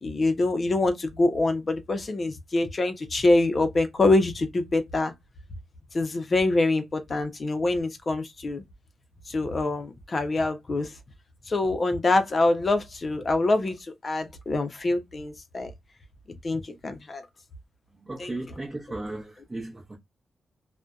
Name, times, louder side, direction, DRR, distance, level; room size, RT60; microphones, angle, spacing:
voice 1, 0.0-5.1 5.9-8.6 9.3-10.9 11.5-13.8 14.0-15.7 16.4-17.2 18.2-18.3, left 2 dB, 40° left, 0.5 m, -25 dB
voice 2, 18.0-20.0, right 2 dB, 25° right, 0.6 m, -36 dB
2.6 x 2.1 x 2.2 m
wide cardioid pair, 105°, 0 cm